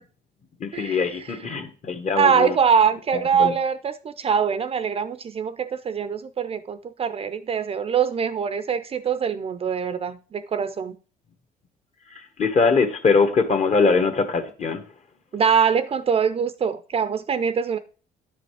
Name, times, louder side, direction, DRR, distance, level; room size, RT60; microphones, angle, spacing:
voice 1, 0.6-2.5 3.1-3.5 12.1-14.8, left 4 dB, 40° left, 1.4 m, -22 dB
voice 2, 2.2-11.0 15.3-17.8, right 7 dB, 35° right, 0.5 m, -23 dB
10.0 x 5.1 x 4.8 m
cardioid pair, 110°, 17 cm